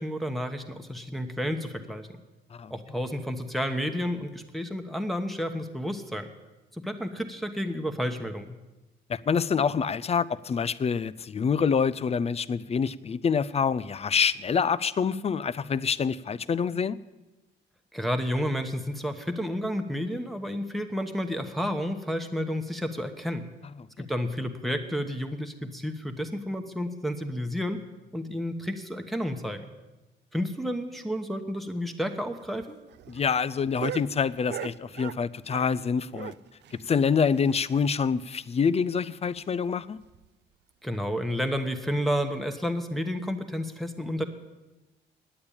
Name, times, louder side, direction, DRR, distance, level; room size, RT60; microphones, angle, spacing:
voice 1, 0.0-2.1 2.7-6.3 6.7-8.5 17.9-23.5 24.0-27.8 28.1-29.6 30.3-32.8 40.8-44.2, equal, ahead, 5 dB, 1.1 m, -31 dB
voice 2, 9.1-17.0 33.1-36.3 36.7-40.0, left 6 dB, 30° left, 17 dB, 0.5 m, -26 dB
sound 1, 32.4-35.8 36.1-38.1 38.4-38.5 38.8-38.9 39.3-39.4 40.0-40.3 41.1-41.2, right 11 dB, 60° right, 0.5 m, -40 dB
9.9 x 8.7 x 8.8 m, 1.1 s
cardioid pair, 90°, 20 cm